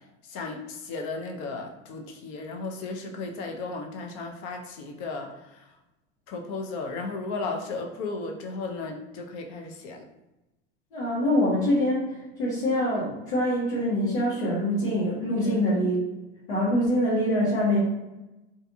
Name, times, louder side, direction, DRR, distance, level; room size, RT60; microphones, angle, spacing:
voice 1, 0.3-5.7 6.3-10.0 15.4-15.6, left 3 dB, 55° left, 3 dB, 0.6 m, -35 dB
voice 2, 10.9-16.0 16.5-17.8, left 1 dB, 90° left, -8 dB, 1.2 m, -24 dB
2.6 x 2.2 x 2.6 m, 1.0 s
hypercardioid pair, 105°, 33 cm